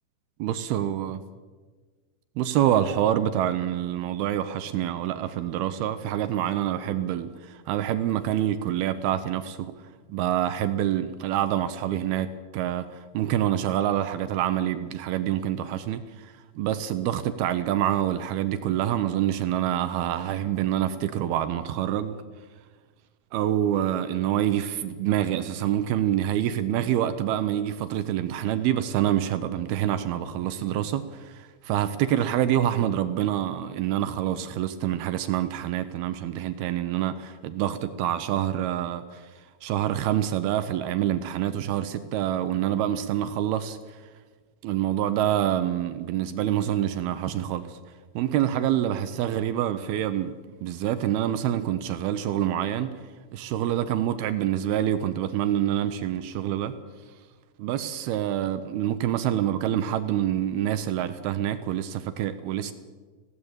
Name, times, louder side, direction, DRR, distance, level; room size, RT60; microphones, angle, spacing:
voice 1, 0.4-1.2 2.4-9.7 10.1-22.2 23.3-39.2 39.6-44.0 44.6-47.8 48.2-52.9 53.3-56.7 57.6-62.7, right 11 dB, 80° right, 11 dB, 2.7 m, -26 dB
19.5 x 16.5 x 8.9 m, 1.4 s
omnidirectional pair, 4.7 m